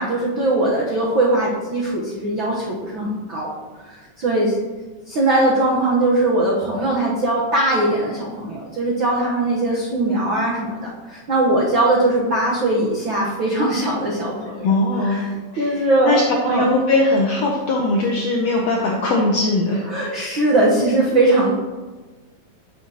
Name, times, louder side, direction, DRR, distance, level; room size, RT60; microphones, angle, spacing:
voice 1, 0.0-3.5 3.9-4.5 5.1-14.7 15.0-15.3 15.6-16.7 19.9-21.5, right 2 dB, 75° right, -4 dB, 1.1 m, -20 dB
voice 2, 14.6-15.3 15.5-19.9, left 2 dB, 75° left, -1 dB, 1.5 m, -20 dB
8.3 x 7.5 x 2.9 m, 1.3 s
omnidirectional pair, 3.9 m